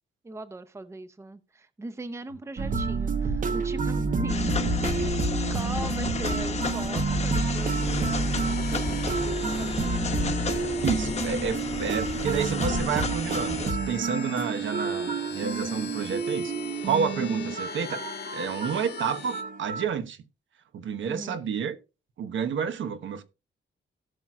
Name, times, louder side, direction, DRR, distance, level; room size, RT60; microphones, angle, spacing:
voice 1, 0.2-4.6 5.0-10.0 21.0-21.4, right 2 dB, 15° right, 0.6 m, -40 dB
sound 1, 2.6-19.9, right 3 dB, 40° right, 0.9 m, -29 dB
sound 2, 4.3-13.7, left 4 dB, 35° left, 1.0 m, -33 dB
sound 3, 7.3-19.4, left 7 dB, 60° left, 1.3 m, -40 dB
voice 2, 10.8-16.5 16.8-18.0 18.3-20.2 20.7-21.8 22.2-23.2, right 7 dB, 75° right, 1.1 m, -30 dB
17.5 x 6.0 x 2.4 m
wide cardioid pair, 170°, 20 cm